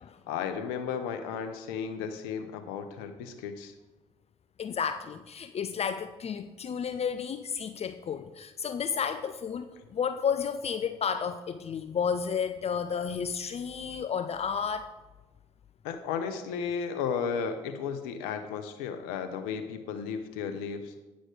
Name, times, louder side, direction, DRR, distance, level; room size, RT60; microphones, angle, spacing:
voice 1, 0.3-3.7 9.8-9.9 15.8-20.9, left 6 dB, 80° left, 8 dB, 0.8 m, -34 dB
voice 2, 4.6-14.9, left 7 dB, 45° left, 10 dB, 0.6 m, -32 dB
9.2 x 6.3 x 4.9 m, 1.1 s
hypercardioid pair, 55°, 15 cm